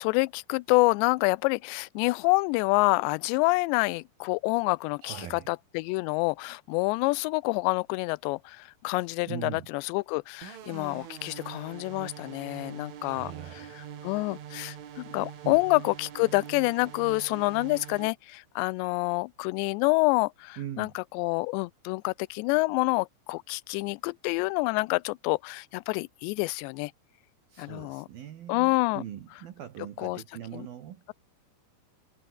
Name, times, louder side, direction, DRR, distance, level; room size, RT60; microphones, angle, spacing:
voice 1, 0.0-13.3 14.0-26.9 27.6-28.1 28.5-29.0 30.0-30.2 30.5-30.7, left 25 dB, 85° left, 2.6 m, -27 dB
voice 2, 5.0-5.5 9.3-9.7 13.0-13.8 15.4-15.6 20.6-20.9 27.5-31.0, right 11 dB, 60° right, 3.1 m, -41 dB
sound 1, 10.4-18.1, right 9 dB, 90° right, 5.7 m, -44 dB
omnidirectional pair, 5.4 m